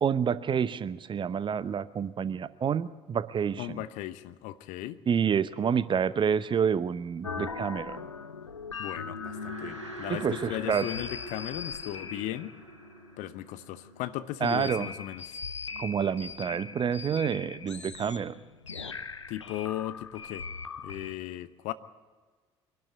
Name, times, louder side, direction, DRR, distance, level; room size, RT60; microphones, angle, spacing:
voice 1, 0.0-3.8 5.1-8.0 10.1-10.9 14.4-14.9 15.8-18.3, right 7 dB, 35° right, 16 dB, 0.9 m, -28 dB
voice 2, 3.6-5.0 8.8-12.5 13.2-15.4 19.3-20.5 20.8-21.7, left 14 dB, 55° left, 14 dB, 0.9 m, -37 dB
sound 1, 7.2-21.1, left 5 dB, 85° left, 0.7 m, -40 dB
sound 2, 9.0-14.4, right 1 dB, 90° right, 1.9 m, -44 dB
23.5 x 12.0 x 9.4 m, 1.4 s
figure-of-eight pair, 55°, 15 cm